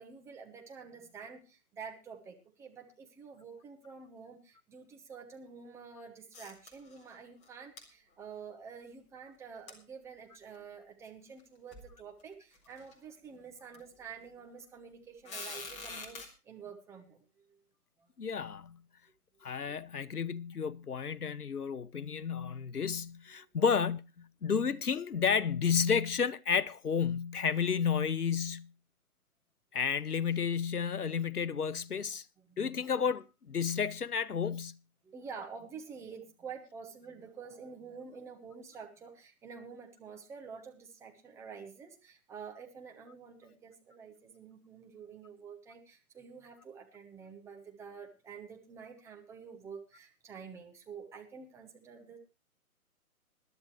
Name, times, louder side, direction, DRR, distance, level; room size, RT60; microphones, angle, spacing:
voice 1, 0.0-17.6 18.0-18.1 23.3-23.5 32.4-32.6 35.0-52.2, right 6 dB, 5° right, 0.9 m, -48 dB
sound 1, 6.3-7.1 7.4-7.5 7.8-7.9 9.7-9.8 10.5-10.6 11.4-11.5 11.7-11.9 12.5-12.9 13.7-13.8 15.2-16.3, left 3 dB, 15° left, 2.3 m, -44 dB
voice 2, 18.2-18.8 19.4-28.7 29.7-32.3 32.6-34.8, left 6 dB, 90° left, 0.8 m, -31 dB
20.5 x 12.0 x 3.1 m
figure-of-eight pair, 135°, 44 cm